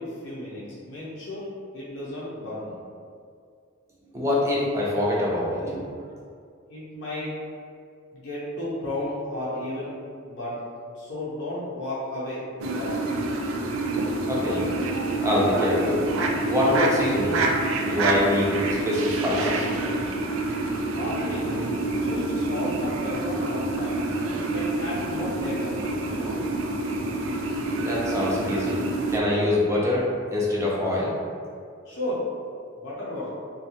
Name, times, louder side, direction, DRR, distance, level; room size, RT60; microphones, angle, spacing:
voice 1, 0.0-1.5 1.7-2.8 6.7-7.4 8.1-9.9 10.2-10.6 10.9-13.0 20.9-24.0 24.3-26.4 31.8-32.3 32.8-33.3, left 1 dB, 65° left, -8 dB, 0.6 m, -33 dB
voice 2, 4.1-5.6 14.3-14.6 15.2-16.1 16.5-17.4 17.8-18.5 18.8-19.6 27.8-28.8 29.1-31.1, left 1 dB, 15° right, -5 dB, 0.4 m, -24 dB
sound 1, 12.6-29.2, right 2 dB, 90° right, 0.3 m, -27 dB
2.5 x 2.2 x 2.8 m, 2.3 s
head